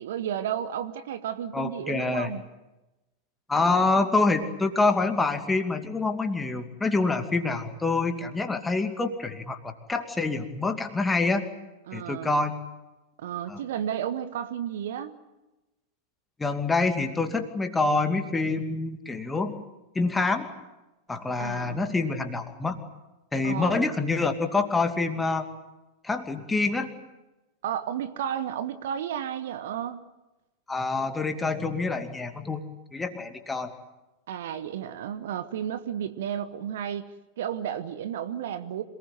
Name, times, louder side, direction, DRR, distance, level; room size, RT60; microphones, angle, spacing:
voice 1, 0.0-2.4 11.9-12.3 13.2-15.2 21.4-22.0 23.4-24.0 27.6-30.0 34.3-37.1 37.4-38.8, right 9 dB, 55° right, 11 dB, 1.4 m, -32 dB
voice 2, 1.5-2.3 3.5-11.5 11.9-12.5 13.5-13.6 16.4-19.6 19.9-20.5 21.1-22.8 23.3-25.5 26.0-26.9 30.7-32.6 32.9-33.7, left 3 dB, 10° left, 6 dB, 2.5 m, -26 dB
27.0 x 20.0 x 9.5 m, 1.0 s
figure-of-eight pair, 90°, 0 cm